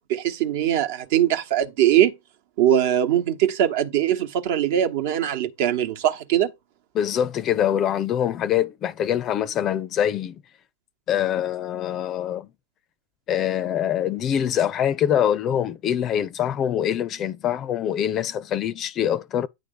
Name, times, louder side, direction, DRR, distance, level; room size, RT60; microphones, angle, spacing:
voice 1, 0.0-2.1 2.6-6.5, right 11 dB, 55° right, 1.0 m, -21 dB
voice 2, 6.9-10.4 11.1-12.5 13.3-19.5, left 10 dB, 30° left, 0.5 m, -24 dB
9.2 x 3.2 x 5.3 m
hypercardioid pair, 110°, 0 cm